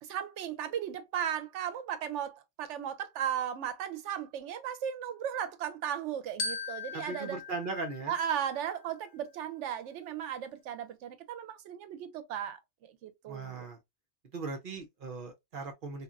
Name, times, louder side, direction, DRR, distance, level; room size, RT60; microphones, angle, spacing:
voice 1, 0.0-7.4 8.1-13.7, right 9 dB, 85° right, 0.9 m, -36 dB
Glockenspiel, 6.4-8.9, left 3 dB, 65° left, 0.9 m, -40 dB
voice 2, 6.9-8.1 13.3-13.8 14.3-16.0, right 3 dB, 55° right, 0.8 m, -38 dB
2.9 x 2.5 x 2.4 m
omnidirectional pair, 1.2 m